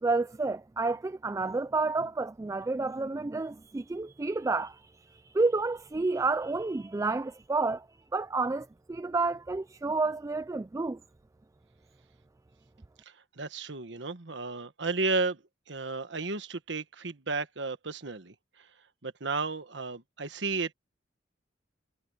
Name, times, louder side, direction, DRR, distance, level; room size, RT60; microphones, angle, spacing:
voice 1, 0.0-7.9 8.1-11.0, right 3 dB, 15° right, 0.3 m, -30 dB
voice 2, 13.4-15.4 15.7-18.3 19.0-20.7, right 3 dB, 75° right, 1.4 m, -33 dB
head